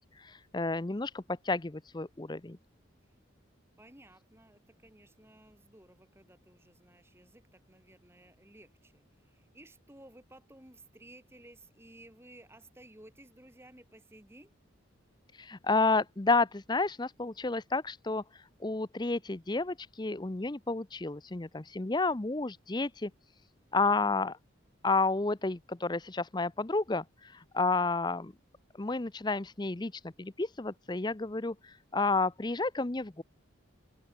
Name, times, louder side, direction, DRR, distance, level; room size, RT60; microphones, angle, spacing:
voice 1, 0.0-2.6 15.4-18.2 18.6-23.1 23.7-24.4 24.8-28.3 28.8-33.2, left 3 dB, 20° left, 0.6 m, -31 dB
voice 2, 3.8-14.5, right 1 dB, 10° right, 3.2 m, -56 dB
open air
head